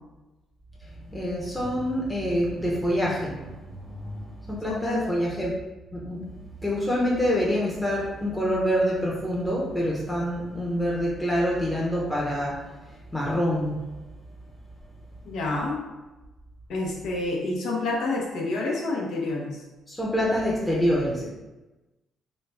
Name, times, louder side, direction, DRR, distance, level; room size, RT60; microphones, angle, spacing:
voice 1, 0.8-5.6 5.9-13.9 19.9-21.3, equal, 5° left, -5 dB, 0.7 m, -26 dB
voice 2, 4.7-5.0 15.2-15.8 16.7-19.6, left 2 dB, 75° left, -1 dB, 0.7 m, -28 dB
3.0 x 2.3 x 3.3 m, 1.1 s
cardioid pair, 90°, 0 cm